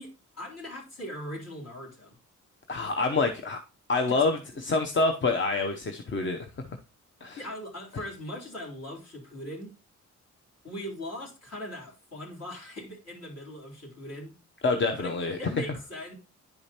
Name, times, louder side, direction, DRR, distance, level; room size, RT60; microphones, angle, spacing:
voice 1, 0.0-2.2 4.1-4.4 7.4-9.7 10.6-14.3 15.0-16.1, left 1 dB, 55° left, 3.4 m, -40 dB
voice 2, 2.7-3.6 3.9-6.4 7.2-7.4 14.6-15.4, left 3 dB, 40° left, 0.8 m, -26 dB
10.5 x 4.8 x 2.9 m
cardioid pair, 85°, 31 cm